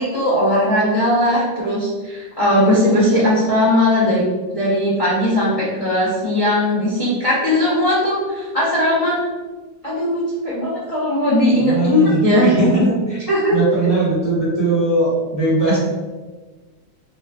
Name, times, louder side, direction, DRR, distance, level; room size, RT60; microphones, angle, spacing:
voice 1, 0.0-4.2 4.5-9.2 9.8-12.5 13.3-13.6, left 1 dB, 70° left, -9 dB, 0.3 m, -18 dB
voice 2, 11.6-13.2 13.5-15.8, right 2 dB, 15° right, -10 dB, 1.3 m, -19 dB
3.7 x 2.5 x 2.2 m, 1.3 s
omnidirectional pair, 1.9 m